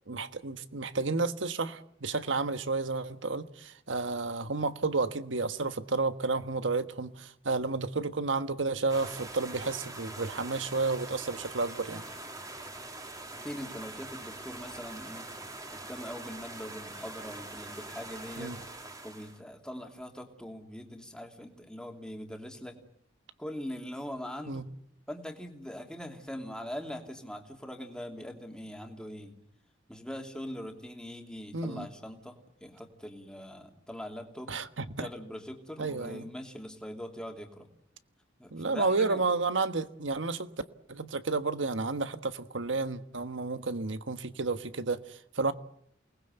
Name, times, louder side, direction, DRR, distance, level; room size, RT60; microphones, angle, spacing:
voice 1, 0.1-12.0 18.4-18.6 24.5-24.6 31.5-31.9 34.5-35.1 35.8-36.3 38.5-40.5 40.9-45.5, right 3 dB, 85° right, 1.4 m, -31 dB
sound 1, 8.9-19.4, right 2 dB, 20° right, 2.9 m, -43 dB
voice 2, 13.4-15.3 15.7-18.5 19.0-22.8 23.4-24.6 25.1-29.3 29.9-34.6 35.0-37.7 38.4-39.2, equal, 5° left, 2.9 m, -42 dB
28.5 x 20.0 x 8.0 m
head